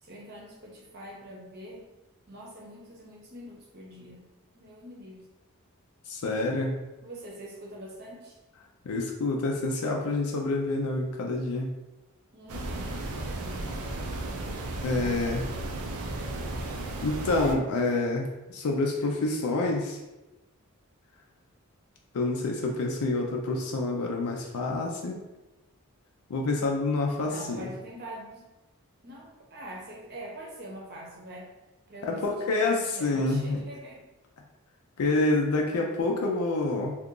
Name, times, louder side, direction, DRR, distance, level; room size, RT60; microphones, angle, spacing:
voice 1, 0.0-1.9 2.3-4.3 4.5-5.3 7.0-8.4 12.3-13.1 27.2-28.4 29.0-31.5 31.9-34.0, right 1 dB, 45° right, -1 dB, 0.7 m, -44 dB
voice 2, 6.1-6.7 8.8-11.7 14.8-15.4 17.0-20.0 22.1-25.2 26.3-27.7 32.0-33.6 35.0-36.9, left 2 dB, 80° left, 0 dB, 0.4 m, -27 dB
sound 1, 12.5-17.5, right 2 dB, 80° right, 0.5 m, -34 dB
2.8 x 2.4 x 3.7 m, 1.0 s
head